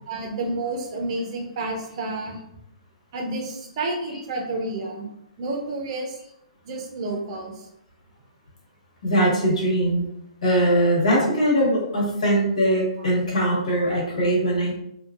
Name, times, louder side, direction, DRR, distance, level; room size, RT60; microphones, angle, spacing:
voice 1, 0.1-2.4 3.1-5.1 5.4-6.2 6.6-7.7 13.0-13.1, right 2 dB, 50° right, 2 dB, 0.7 m, -30 dB
voice 2, 9.0-10.0 10.4-14.7, right 1 dB, 70° left, -4 dB, 1.3 m, -21 dB
2.8 x 2.4 x 2.4 m, 0.80 s
figure-of-eight pair, 125°, 4 cm